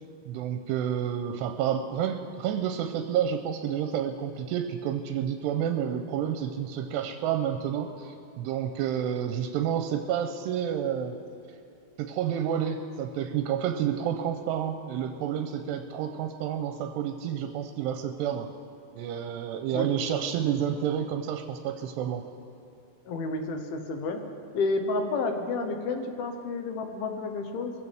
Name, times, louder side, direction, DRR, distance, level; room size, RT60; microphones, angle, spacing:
voice 1, 0.3-11.2 12.0-18.5 19.0-22.2, right 9 dB, 85° right, 6 dB, 2.7 m, -29 dB
voice 2, 23.1-24.2 24.5-27.7, left 3 dB, 70° left, 5 dB, 2.7 m, -30 dB
22.5 x 15.0 x 3.5 m, 2.7 s
omnidirectional pair, 4.9 m